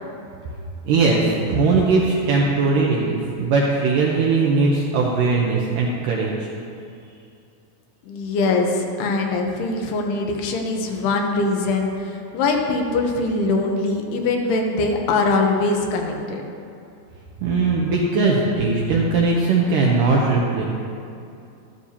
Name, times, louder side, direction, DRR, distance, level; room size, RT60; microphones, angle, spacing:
voice 1, 0.9-6.5 17.4-20.6, right 3 dB, 80° right, -3 dB, 2.0 m, -19 dB
voice 2, 8.0-16.4, left 3 dB, 80° left, 2 dB, 2.8 m, -22 dB
13.0 x 12.0 x 2.8 m, 2.6 s
omnidirectional pair, 4.7 m